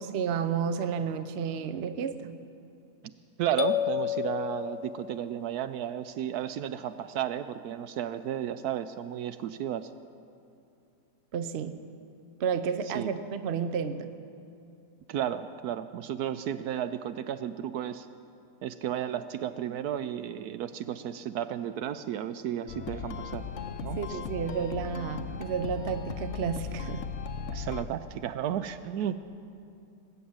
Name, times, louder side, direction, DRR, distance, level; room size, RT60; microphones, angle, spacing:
voice 1, 0.0-2.4 11.3-11.8 12.4-14.2 24.0-27.0, right 7 dB, 55° right, 10 dB, 0.8 m, -31 dB
voice 2, 3.4-9.9 12.9-13.1 15.1-18.1 18.6-23.5 23.8-24.2 27.5-29.2, right 10 dB, 75° right, 11 dB, 1.0 m, -33 dB
sound 1, 3.6-5.5, left 12 dB, 80° left, 1.2 m, -31 dB
sound 2, 22.7-27.8, left 6 dB, 55° left, 0.9 m, -37 dB
20.0 x 7.7 x 8.7 m, 2.6 s
omnidirectional pair, 1.8 m